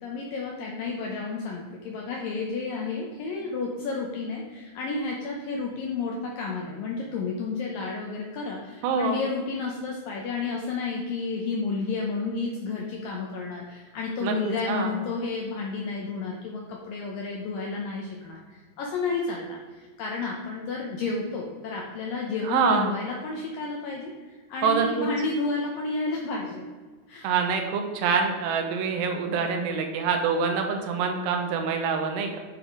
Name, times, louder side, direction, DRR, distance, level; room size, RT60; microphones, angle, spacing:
voice 1, 0.0-26.6 27.1-27.4, left 4 dB, 75° left, -1 dB, 2.1 m, -31 dB
voice 2, 8.8-9.2 14.2-14.9 22.5-22.9 24.6-25.1 27.2-32.4, right 5 dB, 85° right, 4 dB, 2.9 m, -25 dB
9.6 x 4.2 x 4.5 m, 1.4 s
omnidirectional pair, 4.8 m